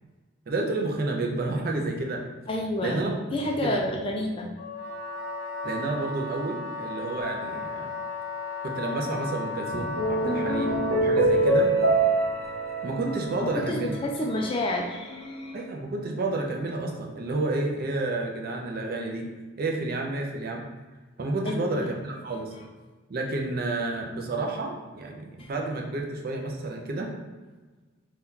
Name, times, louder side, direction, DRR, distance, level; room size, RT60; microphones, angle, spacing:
voice 1, 0.5-2.2 2.8-3.2 3.6-3.8 5.6-7.9 8.6-11.7 12.8-13.9 15.5-19.2 19.6-20.6 21.2-22.5 23.1-27.1, right 2 dB, 45° right, 1 dB, 0.4 m, -30 dB
voice 2, 2.5-3.0 3.3-4.5 13.4-15.6 21.4-21.9 25.4-25.5, left 1 dB, 25° left, 0 dB, 0.3 m, -29 dB
Wind instrument woodwind instrument, 4.6-11.1, left 3 dB, 50° left, 0.7 m, -35 dB
sound 1, 9.7-14.3, right 2 dB, 85° right, 0.9 m, -25 dB
2.8 x 2.3 x 3.6 m, 1.3 s
head